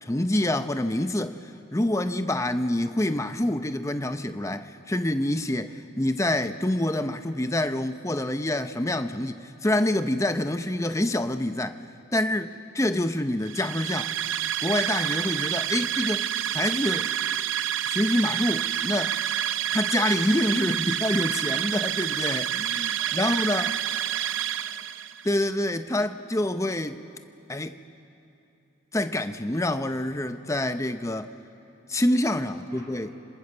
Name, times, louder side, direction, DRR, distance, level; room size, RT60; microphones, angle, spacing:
voice 1, 0.0-11.8 12.1-14.2 14.6-17.1 17.9-19.2 19.7-23.7 25.2-27.0 27.5-27.8 28.9-31.3 31.9-33.1, left 1 dB, 15° left, 0.7 m, -27 dB
sound 1, 13.4-25.3, right 11 dB, 70° right, 0.6 m, -28 dB
voice 2, 23.0-24.8 32.5-33.3, equal, 30° right, 7.0 m, -53 dB
29.5 x 26.0 x 6.8 m
head